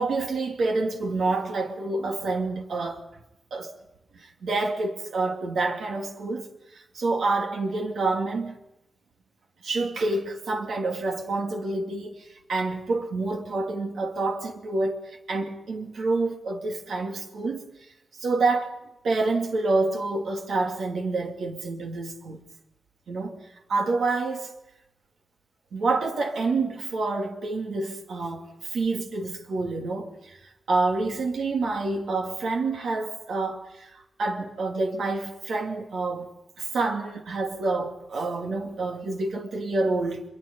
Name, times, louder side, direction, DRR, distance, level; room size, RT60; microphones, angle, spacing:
voice 1, 0.0-3.0 3.5-3.7 4.1-6.5 6.9-8.6 9.6-17.6 18.2-18.8 19.0-22.4 23.1-23.4 23.7-24.5 25.7-30.4 30.7-36.3 36.6-40.2, right 3 dB, 85° right, 2.7 m, -28 dB
24.5 x 22.5 x 5.5 m
cardioid pair, 65°, 0 cm